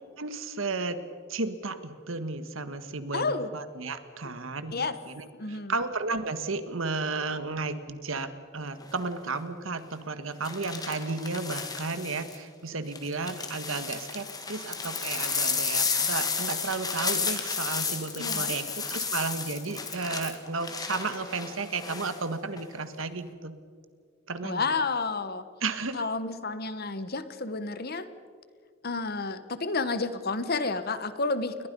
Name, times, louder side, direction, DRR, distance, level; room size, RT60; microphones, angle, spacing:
voice 1, 0.2-1.0 1.3-23.5 24.3-24.7 25.6-26.0, right 3 dB, 70° right, 11 dB, 1.5 m, -33 dB
voice 2, 3.1-3.5 4.7-5.0 5.4-5.7 18.2-18.5 24.4-25.4 25.9-28.1 28.8-31.7, left 3 dB, 45° left, 12 dB, 1.2 m, -30 dB
sound 1, 8.8-9.1 10.4-12.4 12.9-22.2 22.6-23.0, left 5 dB, 20° left, 2.0 m, -32 dB
29.0 x 22.5 x 5.4 m, 2.1 s
head